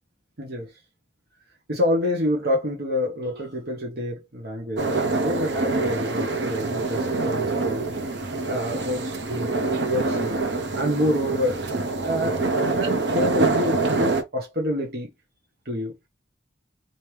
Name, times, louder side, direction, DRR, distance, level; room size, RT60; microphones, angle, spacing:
voice 1, 1.7-7.8 8.1-9.5 9.9-10.4 10.7-11.6 12.0-15.1 15.6-15.9, left 1 dB, 60° right, 1.2 m, -27 dB
sound 1, 4.8-14.2, right 3 dB, 80° right, 0.9 m, -25 dB
4.3 x 3.2 x 3.4 m
head